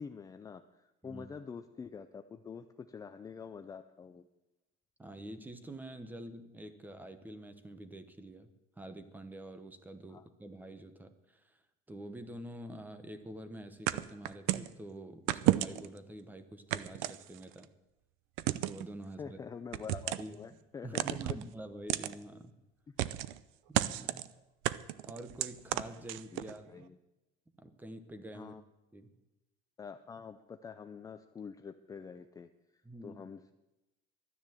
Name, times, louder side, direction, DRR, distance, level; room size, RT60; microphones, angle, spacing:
voice 1, 0.0-4.3 10.1-10.2 19.2-21.0 21.3-21.4 26.3-27.0 28.3-28.6 29.8-32.5 33.0-33.5, left 6 dB, 15° left, 8 dB, 0.5 m, -46 dB
voice 2, 5.0-8.5 8.8-11.6 11.9-17.7 18.5-19.4 20.2-20.4 20.8-22.6 23.7-24.4 25.0-26.9 27.6-28.6 28.9-29.2 32.8-33.2, right 1 dB, 10° right, 10 dB, 1.0 m, -47 dB
sound 1, 13.9-14.7 15.3-16.0 16.7-17.6 18.4-18.9 19.7-20.3 21.0-21.4 21.9-22.1 23.0-23.4 23.7-24.3 24.6-26.5, right 16 dB, 80° right, 0.6 m, -32 dB
12.5 x 10.0 x 7.6 m, 0.99 s
cardioid pair, 145°, 20 cm